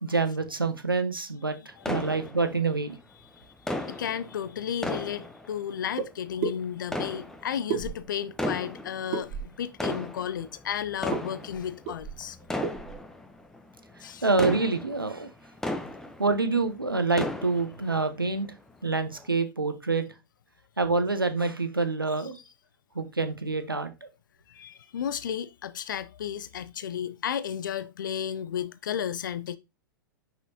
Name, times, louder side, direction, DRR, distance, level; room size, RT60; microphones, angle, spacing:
voice 1, 0.0-3.0 14.2-15.3 16.2-18.5 18.8-20.1 20.8-22.4 22.9-23.9, right 3 dB, 90° right, 0.9 m, -27 dB
voice 2, 1.8-2.2 3.4-12.4 14.0-14.3 24.5-29.6, left 9 dB, 65° left, 0.5 m, -33 dB
sound 1, 1.8-2.9 3.7-6.0 6.8-7.8 8.3-9.2 9.6-16.6 16.9-18.0 18.4-18.5 19.1-19.3, left 1 dB, 5° left, 0.8 m, -35 dB
sound 2, 6.0-6.1 6.4-6.6 7.7-8.3 9.1-9.6 11.1-11.2 11.5-11.6 11.9-12.2 12.6-13.0, right 6 dB, 45° right, 1.3 m, -32 dB
6.1 x 5.5 x 2.8 m
figure-of-eight pair, 100°, 11 cm